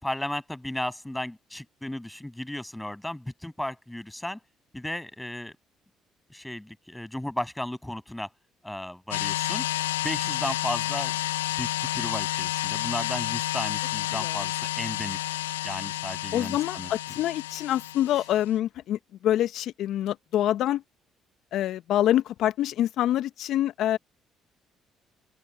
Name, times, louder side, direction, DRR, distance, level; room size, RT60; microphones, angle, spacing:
voice 1, 0.0-4.4 4.7-5.6 6.3-8.3 8.6-9.6 10.0-11.2 11.6-15.4 15.6-16.9, left 1 dB, 10° left, 7.1 m, -34 dB
sound 1, 9.1-18.5, left 15 dB, 90° left, 0.6 m, -30 dB
voice 2, 16.3-20.8 21.5-24.0, left 12 dB, 65° left, 1.0 m, -26 dB
open air
hypercardioid pair, 50°, 0 cm